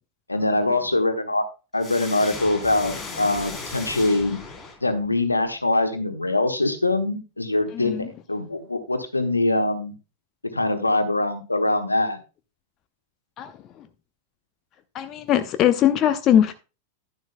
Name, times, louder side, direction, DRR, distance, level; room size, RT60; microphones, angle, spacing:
voice 1, 0.3-1.4 1.7-4.4 4.8-9.9 10.5-12.2, left 2 dB, 85° left, 8 dB, 1.2 m, -23 dB
sound 1, 1.8-5.2, left 3 dB, 15° left, 3.5 m, -36 dB
voice 2, 7.7-8.1 13.4-13.5 14.9-16.5, left 10 dB, 35° left, 11 dB, 0.7 m, -20 dB
11.0 x 10.5 x 2.2 m, 0.31 s
figure-of-eight pair, 90°, 0 cm